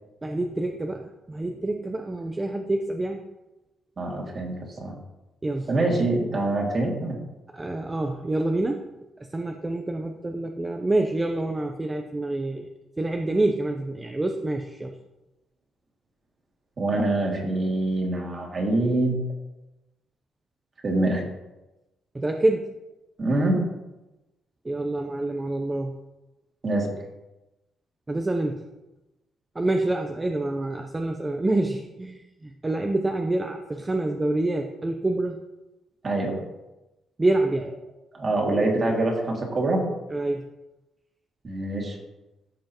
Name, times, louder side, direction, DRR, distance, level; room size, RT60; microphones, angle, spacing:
voice 1, 0.2-3.2 5.4-5.7 7.5-8.8 9.3-12.7 13.0-14.9 22.1-22.7 24.6-26.0 28.1-28.6 29.5-35.4 37.2-37.7 40.1-40.4, right 2 dB, 20° right, 4 dB, 0.7 m, -27 dB
voice 2, 4.0-4.9 5.7-7.2 16.8-19.2 20.8-21.2 23.2-23.6 26.6-26.9 36.0-36.4 38.1-39.8 41.4-42.0, right 2 dB, 40° right, 0 dB, 2.4 m, -25 dB
14.0 x 5.5 x 3.0 m, 1.0 s
cardioid pair, 90°, 0 cm